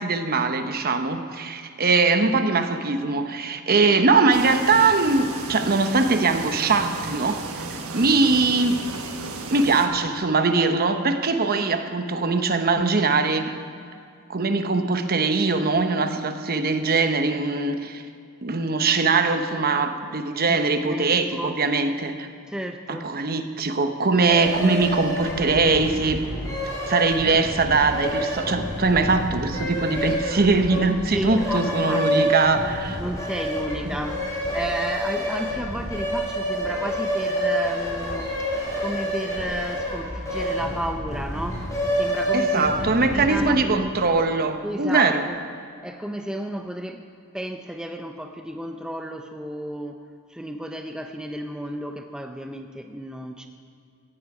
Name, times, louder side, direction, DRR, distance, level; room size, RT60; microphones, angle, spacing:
voice 1, 0.0-7.4 7.9-8.8 9.5-13.5 14.3-18.0 18.4-22.3 22.9-26.2 26.9-33.0 42.3-45.2, right 3 dB, 45° right, 7 dB, 0.9 m, -21 dB
sound 1, 4.3-9.9, right 3 dB, 75° right, 1.4 m, -34 dB
voice 2, 20.8-21.6 22.5-23.1 31.1-32.3 33.0-43.9 44.6-45.4 45.8-47.1 47.3-53.5, equal, 5° right, 5 dB, 0.6 m, -33 dB
sound 2, 24.2-43.7, equal, 15° left, 5.0 m, -28 dB
16.5 x 14.5 x 4.9 m, 2.3 s
head